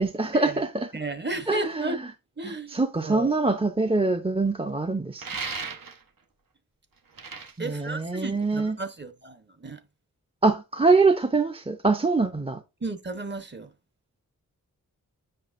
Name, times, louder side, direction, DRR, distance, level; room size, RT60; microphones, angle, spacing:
voice 1, 0.0-0.9 1.5-2.0 2.4-5.3 7.6-8.8 10.4-12.6, right 3 dB, 15° right, 0.6 m, -24 dB
voice 2, 0.9-2.0 2.4-2.8 3.0-3.3 7.6-9.8 12.8-13.7, right 2 dB, 30° right, 1.0 m, -33 dB
sound 1, 5.2-6.2 7.0-8.7, right 4 dB, 70° right, 1.1 m, -36 dB
7.8 x 5.8 x 2.5 m
wide cardioid pair, 90°, 35 cm